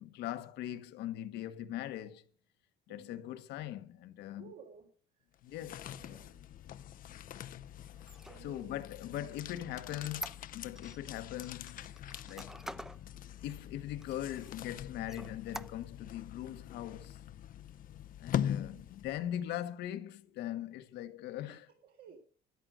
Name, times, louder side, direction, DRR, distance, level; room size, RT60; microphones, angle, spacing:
voice 1, 0.0-2.3 2.9-4.5 5.4-6.2 7.9-8.0 8.4-11.8 12.3-12.6 13.4-17.2 18.2-21.7, left 12 dB, 80° left, 1.3 m, -41 dB
voice 2, 2.9-3.3 4.3-4.9 5.1-5.2 5.9-6.4 8.3-9.3 18.6-18.8 21.8-22.2, right 6 dB, 75° right, 3.9 m, -56 dB
sound 1, 5.3-19.4, left 10 dB, 55° left, 0.6 m, -43 dB
Squeak, 8.0-11.0 11.4-13.0 13.5-13.6 14.0-14.7 15.1-16.1, right 1 dB, 5° right, 0.6 m, -46 dB
13.0 x 11.0 x 6.3 m
cardioid pair, 110°, 17 cm